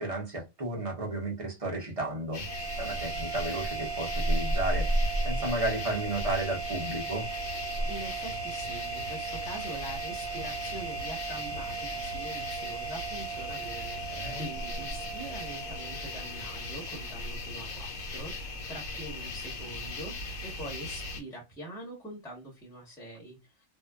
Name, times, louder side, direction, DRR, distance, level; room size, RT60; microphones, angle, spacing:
voice 1, 0.0-2.4 2.8-4.9 5.2-7.3 14.1-14.5, right 2 dB, 30° right, 0.7 m, -33 dB
sound 1, 2.3-21.2, left 1 dB, 65° left, 1.1 m, -35 dB
sound 2, 2.5-17.1, right 8 dB, 75° right, 1.0 m, -39 dB
voice 2, 7.8-23.4, right 1 dB, ahead, 1.0 m, -44 dB
2.7 x 2.3 x 2.2 m
omnidirectional pair, 1.5 m